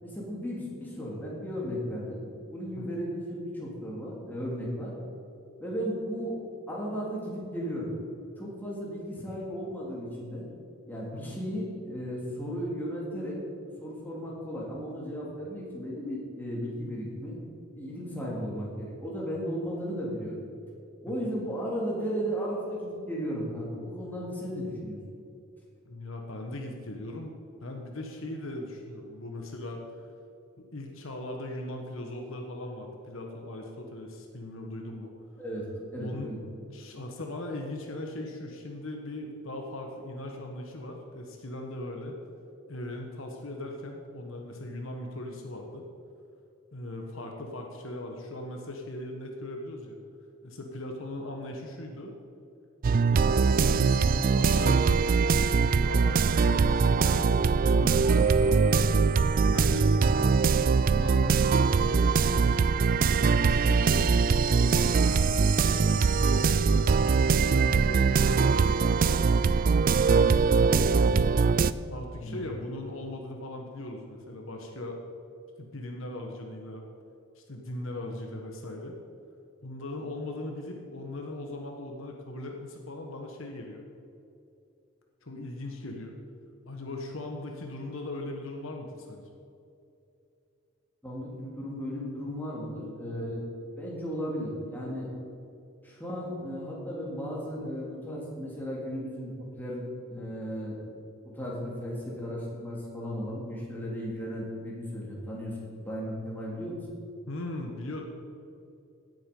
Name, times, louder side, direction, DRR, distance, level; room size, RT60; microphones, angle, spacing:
voice 1, 0.0-2.2 2.5-4.9 5.6-6.3 6.7-7.9 8.4-10.4 10.9-13.4 13.8-17.4 17.8-20.5 21.0-25.0 35.4-35.6 35.9-36.4 72.1-72.4 91.0-93.4 93.8-95.1 95.8-99.8 100.1-100.8 101.3-106.8, equal, 10° left, -5 dB, 3.1 m, -35 dB
voice 2, 25.8-30.0 30.6-35.1 36.0-36.4 36.7-42.2 42.7-45.9 46.7-50.0 50.4-52.1 53.1-55.0 55.6-58.9 59.4-60.4 60.7-61.4 61.8-62.7 63.2-66.9 67.3-69.3 69.9-71.3 71.9-75.0 75.6-76.8 77.3-78.9 79.6-83.8 85.2-86.1 86.7-89.3 97.6-97.7 107.3-108.0, left 1 dB, 65° left, 2 dB, 1.3 m, -39 dB
sound 1, 52.8-71.7, right 5 dB, 40° right, 0.3 m, -22 dB
17.0 x 8.0 x 5.4 m, 2.7 s
head